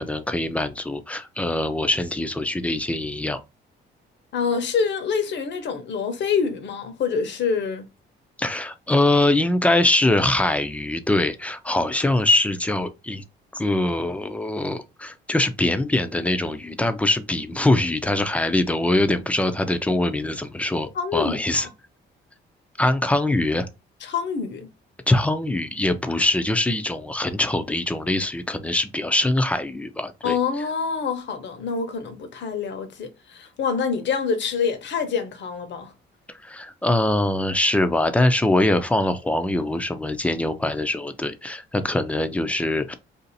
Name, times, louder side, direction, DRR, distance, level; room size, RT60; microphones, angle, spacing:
voice 1, 0.0-3.4 8.4-13.2 13.5-21.7 22.8-23.7 25.1-30.4 36.4-42.9, left 1 dB, 5° left, 0.5 m, -23 dB
voice 2, 4.3-7.9 20.9-21.7 24.0-24.7 30.2-35.9, left 6 dB, 65° left, 0.9 m, -26 dB
2.7 x 2.5 x 4.0 m
cardioid pair, 90°, 20 cm